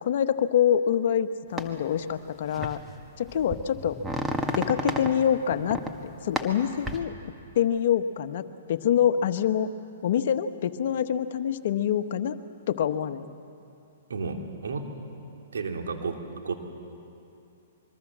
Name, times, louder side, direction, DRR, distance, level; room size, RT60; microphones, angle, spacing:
voice 1, 0.0-2.8 3.2-4.0 4.6-7.1 7.5-9.7 10.0-12.4 12.7-13.3, left 9 dB, 60° left, 10 dB, 1.1 m, -25 dB
sound 1, 1.6-1.7 2.5-2.8 3.3-5.1 5.5-5.9 6.4-7.0, right 1 dB, 10° right, 1.7 m, -31 dB
voice 2, 14.1-14.9 15.5-16.5, right 4 dB, 80° right, 3 dB, 3.0 m, -32 dB
25.5 x 23.0 x 7.5 m, 2.6 s
hypercardioid pair, 130°, 0 cm